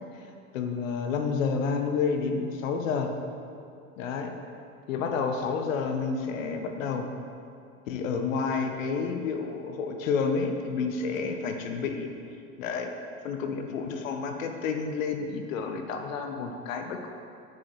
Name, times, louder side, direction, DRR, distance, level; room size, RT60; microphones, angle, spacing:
voice 1, 0.5-3.1 4.0-4.3 4.9-7.1 7.9-12.1 12.6-12.9 13.2-17.1, left 5 dB, 70° left, 5 dB, 1.0 m, -30 dB
9.9 x 8.8 x 3.1 m, 2.5 s
hypercardioid pair, 85°, 41 cm